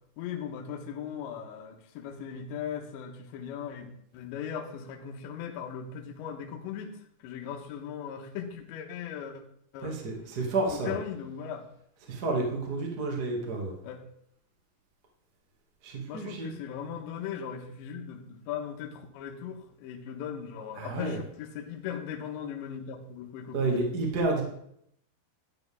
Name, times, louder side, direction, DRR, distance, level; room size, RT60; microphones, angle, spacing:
voice 1, 0.2-6.9 7.2-9.4 9.7-10.0 10.7-11.6 13.8-14.0 16.1-23.8, left 8 dB, 70° left, 3 dB, 3.2 m, -38 dB
voice 2, 9.8-11.0 12.1-13.7 15.8-16.6 20.7-21.2 23.5-24.4, right 3 dB, 70° right, 0 dB, 0.9 m, -30 dB
12.0 x 10.5 x 3.6 m, 0.71 s
omnidirectional pair, 5.9 m